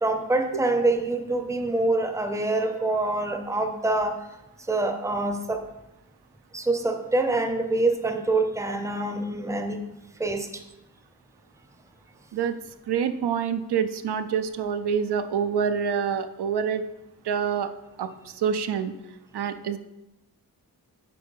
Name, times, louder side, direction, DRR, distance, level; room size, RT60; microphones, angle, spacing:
voice 1, 0.0-4.2 4.7-5.6 6.5-9.8 10.2-10.6, right 2 dB, 10° right, 6 dB, 0.6 m, -25 dB
voice 2, 12.9-16.8 17.3-17.7 18.0-18.1 18.4-18.9 19.3-19.8, right 7 dB, 85° right, 10 dB, 0.6 m, -26 dB
7.7 x 4.4 x 5.4 m, 0.93 s
wide cardioid pair, 150°, 38 cm